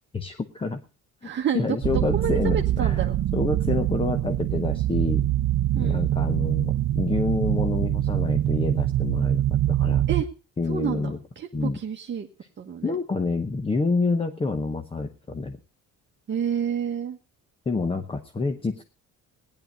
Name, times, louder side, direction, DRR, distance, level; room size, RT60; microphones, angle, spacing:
voice 1, 0.1-0.8 1.2-1.3 1.5-3.0 3.3-5.3 5.8-10.1 10.6-11.2 11.5-11.8 12.8-15.6 17.7-18.8, left 3 dB, 15° left, 8 dB, 0.8 m, -28 dB
voice 2, 1.2-3.1 5.7-6.0 10.1-10.3 10.7-12.3 12.6-12.9 16.3-17.2, right 8 dB, 35° right, 1 dB, 1.3 m, -29 dB
sound 1, 1.8-10.2, right 13 dB, 55° right, 0.7 m, -24 dB
17.0 x 10.5 x 5.2 m, 0.36 s
cardioid pair, 160°, 33 cm